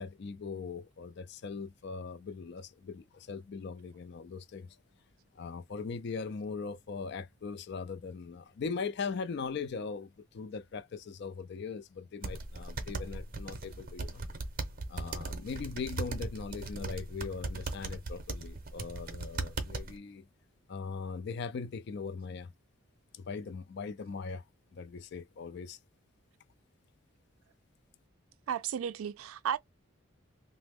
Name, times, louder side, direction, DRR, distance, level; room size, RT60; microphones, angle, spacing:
voice 1, 0.0-4.8 5.3-14.2 14.9-20.2 20.7-22.5 23.1-24.4 24.7-25.8, left 5 dB, 55° left, 0.4 m, -40 dB
sound 1, 12.2-20.0, right 3 dB, 45° right, 0.6 m, -38 dB
voice 2, 28.5-29.6, right 8 dB, 85° right, 0.3 m, -33 dB
2.9 x 2.0 x 3.5 m
head